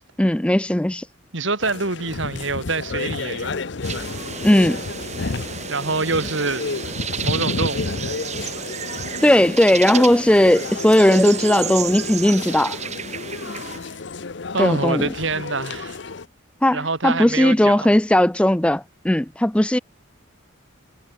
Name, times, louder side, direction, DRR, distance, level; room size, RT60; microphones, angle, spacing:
voice 1, 0.2-1.1 4.4-4.9 9.2-12.8 14.6-15.1 16.6-19.8, left 1 dB, 5° left, 0.4 m, -17 dB
voice 2, 1.3-3.6 5.7-6.6 7.2-8.0 13.5-14.0 14.5-16.0 16.7-17.9, right 3 dB, 70° right, 2.6 m, -26 dB
sound 1, 1.6-16.3, left 3 dB, 60° left, 0.7 m, -31 dB
sound 2, 3.8-13.8, right 7 dB, 35° right, 4.2 m, -32 dB
head